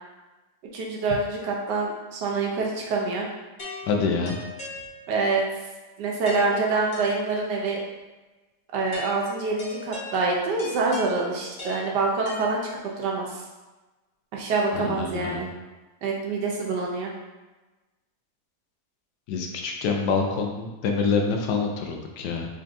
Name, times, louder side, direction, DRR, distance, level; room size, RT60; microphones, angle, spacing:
voice 1, 0.7-3.3 5.1-5.4 6.0-7.8 8.7-12.6 13.0-13.4 14.3-15.5 16.0-17.1, right 3 dB, 85° right, -1 dB, 1.4 m, -26 dB
sound 1, 3.6-5.4 6.3-7.7 8.9-13.0, left 2 dB, 35° left, 1.0 m, -40 dB
voice 2, 3.9-4.3 14.7-15.5 19.3-22.5, left 5 dB, 85° left, 2 dB, 1.2 m, -26 dB
3.9 x 3.4 x 2.6 m, 1.2 s
omnidirectional pair, 1.8 m